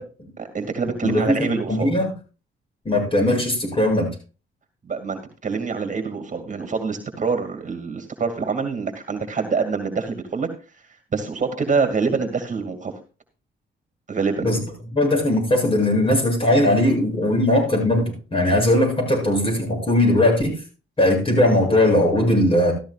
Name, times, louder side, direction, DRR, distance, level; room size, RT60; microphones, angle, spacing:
voice 1, 0.4-1.9 4.8-10.5 11.1-12.9 14.1-14.5, right 5 dB, 40° right, 7 dB, 2.3 m, -25 dB
voice 2, 1.0-2.0 2.8-4.1 14.4-14.6 14.9-20.6 21.0-22.7, left 1 dB, 25° left, 0 dB, 7.6 m, -19 dB
14.0 x 13.5 x 2.4 m, 0.35 s
cardioid pair, 90°, 20 cm